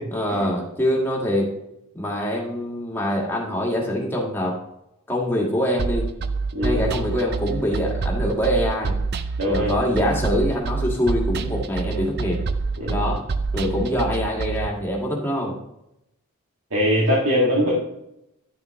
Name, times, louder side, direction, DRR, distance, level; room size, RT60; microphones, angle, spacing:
voice 1, 0.1-1.5 1.9-4.6 5.1-6.1 6.6-9.0 9.5-12.4 12.9-13.3 13.5-15.5, equal, 10° left, -2 dB, 1.7 m, -24 dB
sound 1, 5.8-14.7, right 4 dB, 45° right, 0.5 m, -27 dB
voice 2, 6.5-6.9 9.4-9.7 12.8-13.0 16.7-17.7, equal, 65° right, -6 dB, 2.0 m, -21 dB
10.5 x 7.0 x 3.1 m, 0.83 s
head